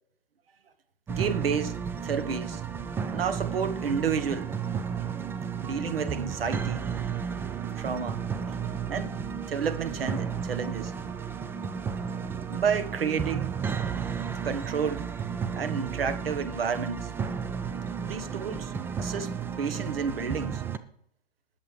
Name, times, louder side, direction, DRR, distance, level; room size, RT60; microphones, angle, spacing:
sound 1, 1.1-20.8, right 7 dB, 10° right, 0.4 m, -33 dB
voice 1, 1.1-1.8 2.0-2.6 3.1-4.5 5.6-6.9 7.7-8.2 8.9-9.2 9.5-10.9 12.5-13.6 14.4-15.0 15.5-17.1 18.0-19.3 19.6-20.6, right 6 dB, 70° right, 1.3 m, -30 dB
20.0 x 7.2 x 3.2 m
figure-of-eight pair, 105°, 30 cm